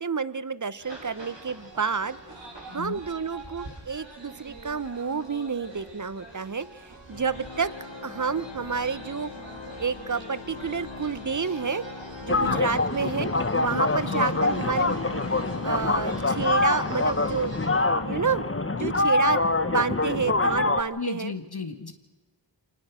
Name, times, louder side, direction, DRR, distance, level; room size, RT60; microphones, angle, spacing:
voice 1, 0.0-2.2 2.7-7.7 8.0-9.3 9.8-11.8 12.2-13.3 13.6-17.6 18.0-21.3, right 5 dB, 40° right, 17 dB, 0.9 m, -29 dB
sound 1, 0.8-17.7, right 2 dB, 70° right, 7.3 m, -44 dB
voice 2, 2.7-3.0 12.4-12.7 14.0-14.4 20.9-21.9, left 4 dB, 55° left, 7 dB, 1.7 m, -35 dB
Organ, 7.1-17.7, left 5 dB, 80° left, 1.5 m, -42 dB
sound 2, 12.3-20.8, left 3 dB, 30° left, 1.3 m, -25 dB
25.5 x 19.0 x 6.2 m, 1.1 s
wide cardioid pair, 45°, 46 cm